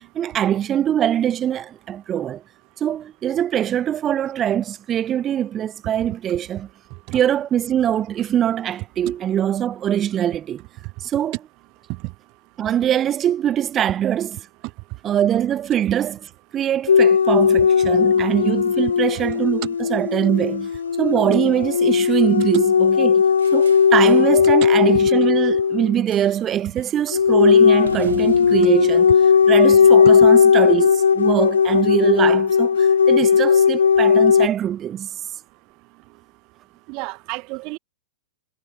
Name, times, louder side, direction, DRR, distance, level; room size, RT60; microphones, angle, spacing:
voice 1, 0.2-2.4 2.8-6.7 7.1-10.6 11.0-11.3 12.6-14.4 15.0-16.2 16.5-20.7 21.0-23.2 23.5-29.1 29.5-35.1, right 10 dB, 30° right, 0.4 m, -22 dB
sound 1, 16.9-25.9 27.1-34.5, left 6 dB, 80° left, 0.5 m, -16 dB
sound 2, 23.4-24.4 26.1-26.5 26.8-27.0 27.8-30.2, right 9 dB, 75° right, 3.4 m, -40 dB
voice 2, 36.9-37.8, right 27 dB, 45° right, 1.4 m, -31 dB
hypercardioid pair, 105°, 0 cm